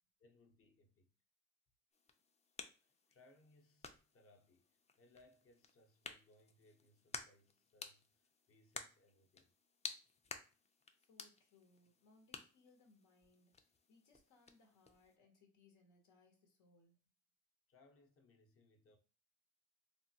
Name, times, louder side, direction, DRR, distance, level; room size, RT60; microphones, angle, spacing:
voice 1, 0.2-1.1 2.8-9.5 17.7-19.0, left 2 dB, 45° left, 0.7 m, -69 dB
sound 1, 1.9-15.2, left 4 dB, 25° left, 0.4 m, -54 dB
voice 2, 11.0-17.0, left 3 dB, 85° left, 0.9 m, -70 dB
3.3 x 2.2 x 2.7 m
cardioid pair, 90°, 30 cm